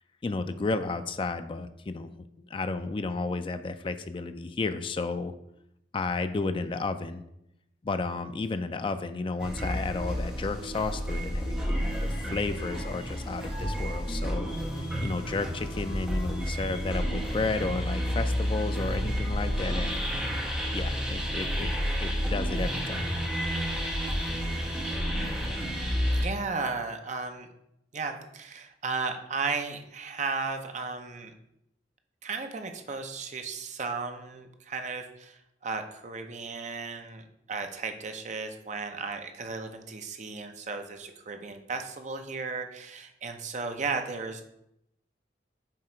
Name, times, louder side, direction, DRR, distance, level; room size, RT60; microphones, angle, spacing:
voice 1, 0.2-2.2 2.5-5.3 5.9-7.2 7.8-14.5 14.8-20.0 20.7-21.7 22.0-23.1, left 3 dB, 30° left, 10 dB, 0.3 m, -32 dB
sound 1, 9.4-26.2, equal, 5° right, 1.2 m, -30 dB
voice 2, 26.1-27.5 27.9-31.3 32.2-44.4, right 4 dB, 40° right, 6 dB, 0.6 m, -35 dB
7.4 x 2.9 x 4.4 m, 0.81 s
head